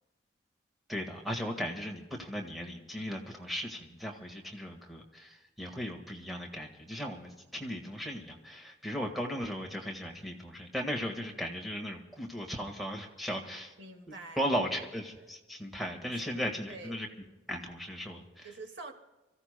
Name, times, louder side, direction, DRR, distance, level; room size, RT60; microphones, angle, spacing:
voice 1, 0.9-13.7 14.4-17.1 17.5-18.5, equal, ahead, 1 dB, 1.6 m, -37 dB
voice 2, 13.8-14.4 16.1-16.4 16.7-17.0 18.4-18.9, right 3 dB, 80° right, 3 dB, 1.9 m, -46 dB
29.5 x 15.5 x 2.2 m, 1.1 s
head